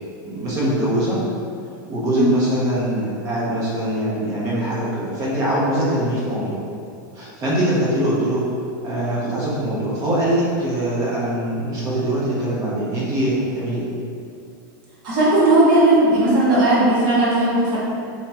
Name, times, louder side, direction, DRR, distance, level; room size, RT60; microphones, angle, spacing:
voice 1, 0.2-1.2 1.9-6.6 7.1-8.4 8.8-13.9, right 1 dB, 25° right, -7 dB, 1.0 m, -22 dB
voice 2, 15.0-17.8, right 1 dB, 45° right, -8 dB, 1.4 m, -16 dB
2.8 x 2.8 x 3.5 m, 2.5 s
supercardioid pair, 150°, 11 cm